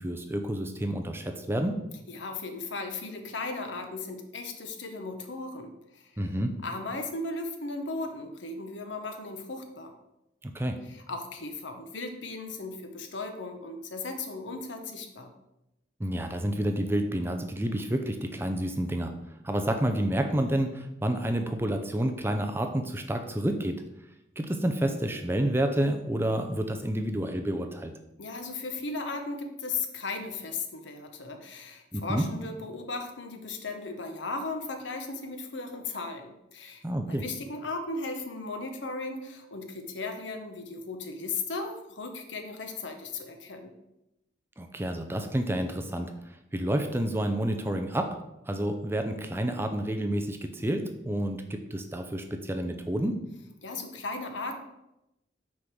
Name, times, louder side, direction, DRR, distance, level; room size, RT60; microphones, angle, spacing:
voice 1, 0.0-1.8 6.2-6.5 10.4-10.8 16.0-19.1 19.4-23.8 24.4-27.9 31.9-32.3 36.8-37.2 44.6-46.1 46.5-48.2 48.5-53.2, right 1 dB, 10° right, 6 dB, 0.5 m, -29 dB
voice 2, 2.1-6.2 6.6-9.9 10.8-15.3 28.2-43.7 53.6-54.6, left 3 dB, 80° left, 5 dB, 1.0 m, -36 dB
6.1 x 3.9 x 6.0 m, 0.89 s
head